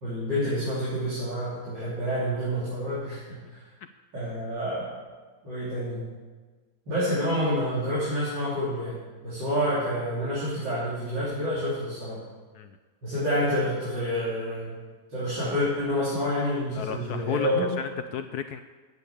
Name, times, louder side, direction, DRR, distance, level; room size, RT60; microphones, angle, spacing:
voice 1, 0.0-3.6 4.1-4.9 5.4-6.0 6.9-9.0 9.2-12.2 13.0-14.8 15.1-17.7, equal, 90° right, -11 dB, 4.3 m, -28 dB
voice 2, 16.7-17.5 17.8-18.6, left 9 dB, 70° left, 9 dB, 1.0 m, -33 dB
9.2 x 7.9 x 8.4 m, 1.3 s
omnidirectional pair, 1.9 m